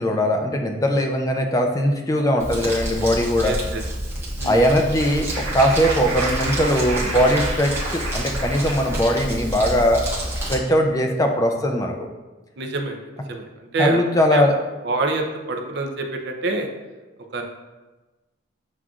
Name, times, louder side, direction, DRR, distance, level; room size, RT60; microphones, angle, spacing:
voice 1, 0.0-3.5 4.4-10.0 10.5-11.9 13.8-14.6, equal, 15° left, 3 dB, 0.3 m, -20 dB
Crumpling crinkling, 2.4-10.6, right 1 dB, 10° right, 0.7 m, -29 dB
voice 2, 3.4-3.8 4.4-4.6 12.6-13.0 13.3-14.0 14.3-14.4 14.8-16.7 17.3-17.4, right 2 dB, 55° right, 3 dB, 0.5 m, -26 dB
Applause, 4.3-9.1, right 2 dB, 85° right, 1.0 m, -30 dB
7.2 x 2.4 x 2.3 m, 1.2 s
head